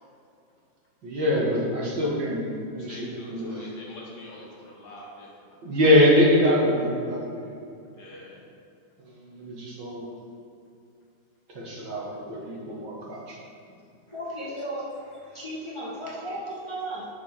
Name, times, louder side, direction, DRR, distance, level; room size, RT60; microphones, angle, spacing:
voice 1, 1.0-2.4 2.7-3.6 5.6-7.3 9.3-10.0 11.5-13.4, left 1 dB, 60° right, -4 dB, 2.3 m, -23 dB
voice 2, 2.7-5.3 5.7-5.9 8.0-8.4, left 1 dB, 55° left, -3 dB, 1.9 m, -45 dB
voice 3, 14.1-17.1, right 1 dB, 15° left, -7 dB, 1.4 m, -35 dB
10.5 x 6.0 x 4.5 m, 2.5 s
omnidirectional pair, 2.3 m